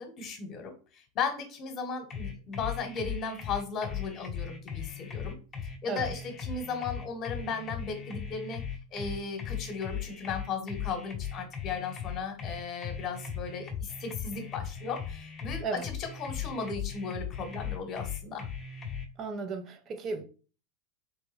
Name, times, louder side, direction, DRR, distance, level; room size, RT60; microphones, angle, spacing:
voice 1, 0.0-5.3 5.8-8.6 8.9-18.4, left 5 dB, 40° left, 1.1 m, -36 dB
sound 1, 2.1-19.1, left 8 dB, 25° left, 0.8 m, -38 dB
voice 2, 19.2-20.2, right 4 dB, 40° right, 0.6 m, -35 dB
3.3 x 3.1 x 3.4 m
hypercardioid pair, 100°, 0 cm